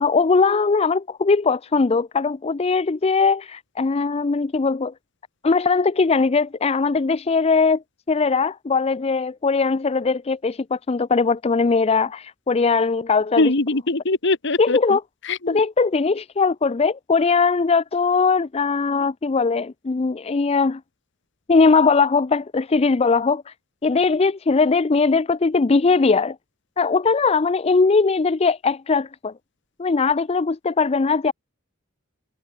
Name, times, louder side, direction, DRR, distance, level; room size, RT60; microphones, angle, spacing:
voice 1, 0.0-4.9 5.4-7.8 8.1-13.5 14.6-15.0 15.5-20.8 21.5-23.5 23.8-26.4 26.8-29.3 29.8-31.3, left 4 dB, 30° left, 0.4 m, -20 dB
voice 2, 13.4-14.8 15.3-15.6, left 2 dB, 60° left, 1.7 m, -21 dB
head